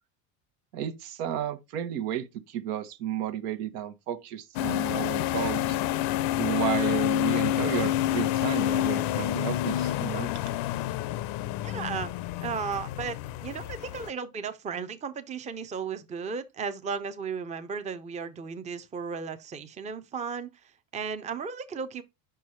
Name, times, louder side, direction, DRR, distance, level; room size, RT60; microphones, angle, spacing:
voice 1, 0.7-5.8 6.4-10.3, right 10 dB, 80° right, 1.1 m, -32 dB
sound 1, 4.6-14.1, left 13 dB, 60° left, 0.6 m, -28 dB
voice 2, 11.6-12.1 12.4-22.0, right 5 dB, 15° right, 0.6 m, -35 dB
5.4 x 4.6 x 4.5 m
supercardioid pair, 105°, 47 cm